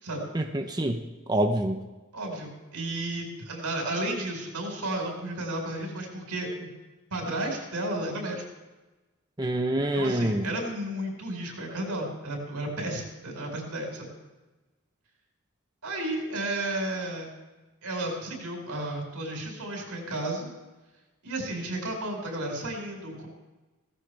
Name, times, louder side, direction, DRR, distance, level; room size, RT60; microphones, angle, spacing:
voice 1, 0.3-1.0 1.3-1.8 9.4-10.5, right 1 dB, 20° right, 4 dB, 0.7 m, -26 dB
voice 2, 2.1-6.7 7.1-8.4 9.9-14.1 15.8-17.3 17.8-20.5 21.2-23.3, right 1 dB, 90° right, 1 dB, 4.9 m, -33 dB
17.0 x 15.5 x 3.4 m, 1.2 s
head